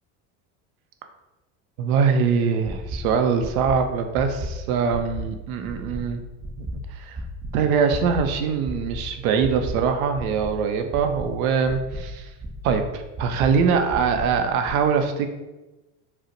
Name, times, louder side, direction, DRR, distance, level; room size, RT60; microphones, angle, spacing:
voice 1, 1.8-6.2 6.6-6.7 7.0-7.2 7.5-12.3 12.6-15.3, right 6 dB, 80° right, 6 dB, 0.5 m, -23 dB
sound 1, 2.6-3.0 3.4-3.7 4.1-4.5 4.9-5.2 5.6-6.0 6.4-6.7 7.1-7.5 7.9-8.2 8.6-9.0 9.4-9.7 10.1-10.5 10.9-11.2 11.6-12.0 12.4-12.7 13.1-13.5 13.9-14.2 14.6-14.7, right 2 dB, 20° right, 0.6 m, -33 dB
4.0 x 2.1 x 2.6 m, 1.1 s
supercardioid pair, 90°, 42 cm